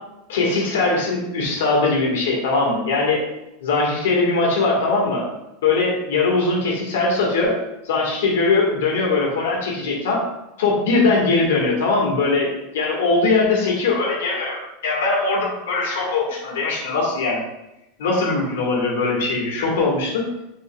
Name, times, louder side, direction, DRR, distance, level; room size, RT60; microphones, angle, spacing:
voice 1, 0.3-3.2 3.6-5.3 5.6-7.5 7.8-10.2 10.6-17.4 18.0-20.2, left 3 dB, 85° left, -2 dB, 1.5 m, -21 dB
5.5 x 3.9 x 2.3 m, 0.91 s
supercardioid pair, 130°, 0 cm